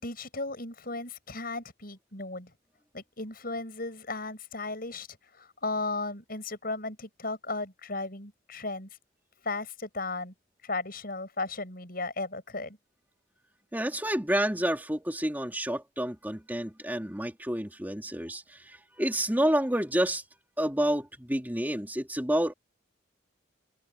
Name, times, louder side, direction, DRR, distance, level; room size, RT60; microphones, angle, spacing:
voice 1, 0.0-2.5 2.9-5.1 5.4-8.9 9.4-10.3 10.6-12.8, left 3 dB, 50° left, 7.3 m, -35 dB
voice 2, 13.7-20.2 20.6-22.5, right 1 dB, 10° right, 2.8 m, -29 dB
head